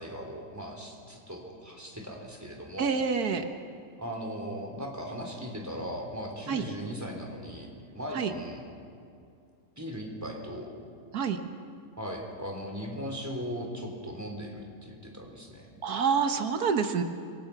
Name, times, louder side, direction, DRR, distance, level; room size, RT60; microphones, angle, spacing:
voice 1, 0.0-2.9 4.0-8.6 9.8-10.7 12.0-15.7, equal, 10° right, 1 dB, 3.6 m, -38 dB
voice 2, 2.8-3.4 6.5-6.6 8.1-8.3 11.1-11.4 15.8-17.0, right 6 dB, 85° right, 7 dB, 1.7 m, -27 dB
26.0 x 24.0 x 6.0 m, 2.4 s
omnidirectional pair, 1.6 m